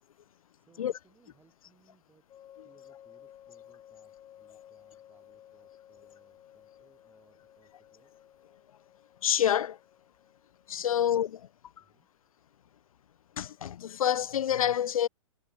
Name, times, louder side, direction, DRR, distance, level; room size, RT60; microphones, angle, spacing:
voice 1, 0.5-2.3 2.6-8.1 10.8-11.0 11.8-12.1, right 5 dB, 10° right, 4.2 m, -66 dB
sound 1, 2.3-10.8, left 11 dB, 20° left, 1.6 m, -55 dB
voice 2, 9.2-9.8 10.7-11.5 13.4-15.1, left 10 dB, 80° left, 0.4 m, -27 dB
hypercardioid pair, 135°, 18 cm